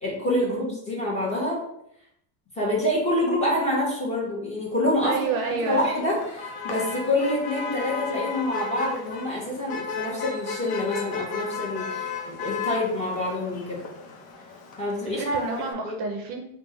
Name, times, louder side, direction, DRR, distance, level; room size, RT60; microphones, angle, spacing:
voice 1, 0.0-1.6 2.5-5.2 5.6-13.8 14.8-15.4 15.8-16.0, left 1 dB, 15° left, -4 dB, 1.2 m, -26 dB
voice 2, 5.0-5.8 15.0-16.4, right 4 dB, 50° right, 2 dB, 0.6 m, -29 dB
Motor vehicle (road), 5.2-15.7, left 5 dB, 70° left, 0.9 m, -35 dB
3.5 x 2.5 x 4.4 m, 0.75 s
cardioid pair, 150°, 47 cm